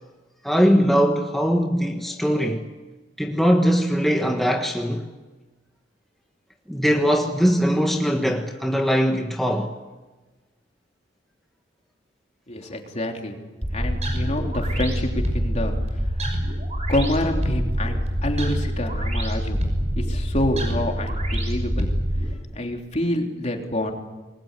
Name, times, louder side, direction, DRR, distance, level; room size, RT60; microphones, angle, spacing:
voice 1, 0.4-2.7 3.2-5.1 6.7-9.7, equal, ahead, 1.5 m, -21 dB
voice 2, 12.5-13.4 13.7-15.7 16.9-19.6 19.9-21.9 22.5-23.9, left 1 dB, 40° left, 3.4 m, -27 dB
sound 1, 13.6-22.3, equal, 40° right, 6.1 m, -25 dB
28.5 x 21.5 x 8.2 m
head